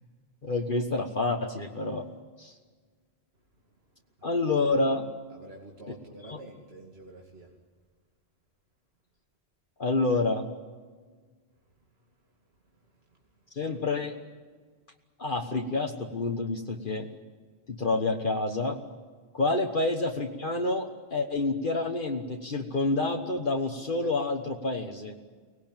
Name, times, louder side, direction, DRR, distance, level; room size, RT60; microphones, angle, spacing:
voice 1, 0.4-2.1 2.4-2.5 4.2-5.1 5.9-6.0 6.2-6.4 9.8-10.4 13.6-14.2 15.2-17.1 17.7-18.8 19.3-25.1, left 3 dB, 55° left, 3 dB, 1.5 m, -28 dB
voice 2, 5.3-7.5 19.8-19.9, right 1 dB, 70° right, -1 dB, 2.7 m, -48 dB
24.0 x 19.0 x 9.0 m, 1.5 s
omnidirectional pair, 1.1 m